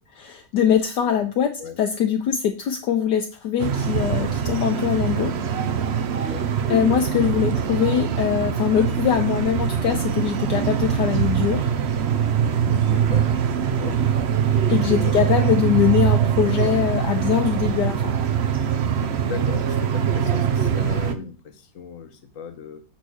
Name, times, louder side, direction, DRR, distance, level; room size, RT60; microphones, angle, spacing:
voice 1, 0.1-1.5 1.8-5.3 6.7-11.7 14.7-18.1, left 9 dB, 70° left, 5 dB, 1.2 m, -22 dB
sound 1, 3.6-21.1, right 8 dB, 70° right, 0.6 m, -23 dB
voice 2, 6.1-6.5 12.8-13.3 13.6-14.0 15.0-15.3 19.3-22.8, left 6 dB, 50° left, 7 dB, 1.3 m, -37 dB
6.5 x 4.6 x 6.1 m, 0.36 s
omnidirectional pair, 2.0 m